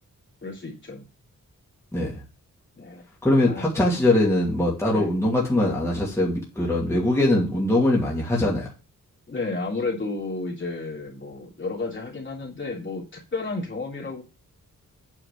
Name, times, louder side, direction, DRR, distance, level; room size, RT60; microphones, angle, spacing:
voice 1, 0.4-1.0 2.8-3.0 3.5-3.7 4.9-5.1 9.3-14.2, left 3 dB, 35° left, -3 dB, 3.2 m, -32 dB
voice 2, 1.9-2.2 3.2-8.7, left 1 dB, 10° left, -4 dB, 2.6 m, -22 dB
9.0 x 4.8 x 6.8 m, 0.31 s
wide cardioid pair, 160°, 32 cm